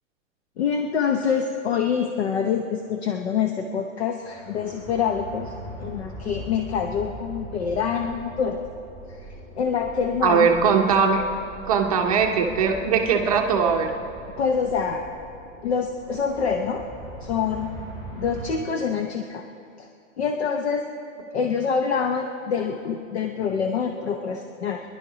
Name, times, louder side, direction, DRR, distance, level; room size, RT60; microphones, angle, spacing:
voice 1, 0.6-5.5 5.8-8.6 9.2-10.5 14.4-15.0 15.6-16.9 17.2-17.7 18.2-19.4 19.8-19.9 20.2-20.9 21.3-24.8, left 6 dB, 55° left, 5 dB, 0.9 m, -26 dB
sound 1, 4.2-18.5, right 1 dB, 15° left, 3.3 m, -41 dB
voice 2, 10.2-11.2 11.6-13.9, right 6 dB, 30° right, 3 dB, 0.7 m, -20 dB
24.5 x 11.0 x 3.9 m, 2.6 s
hypercardioid pair, 180°, 40 cm